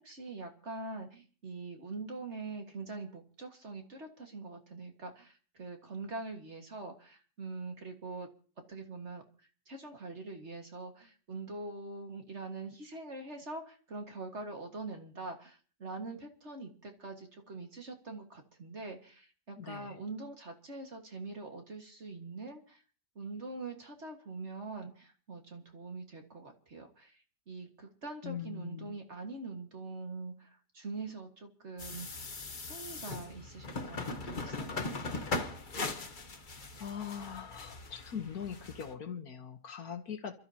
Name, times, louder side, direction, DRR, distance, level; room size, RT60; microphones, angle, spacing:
voice 1, 0.0-8.3 8.7-9.2 9.7-22.8 23.2-32.3 32.7-34.8, right 3 dB, 40° right, 3 dB, 2.0 m, -44 dB
voice 2, 19.6-19.9 28.2-28.9 35.9-36.2 36.8-40.3, left 7 dB, 60° left, 7 dB, 1.5 m, -41 dB
sound 1, 31.8-38.9, left 3 dB, 30° left, 1.2 m, -39 dB
28.5 x 12.5 x 2.9 m, 0.39 s
omnidirectional pair, 1.9 m